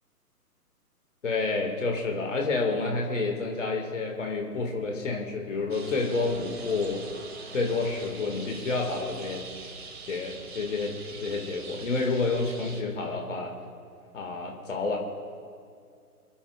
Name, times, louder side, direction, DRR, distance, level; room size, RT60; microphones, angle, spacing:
voice 1, 1.2-7.0 7.5-9.5 10.0-13.5 14.1-15.0, left 3 dB, 50° left, 1 dB, 2.0 m, -29 dB
sound 1, 5.7-12.8, right 4 dB, 40° right, 1.6 m, -43 dB
27.0 x 12.0 x 2.4 m, 2.3 s
figure-of-eight pair, 135°, 47 cm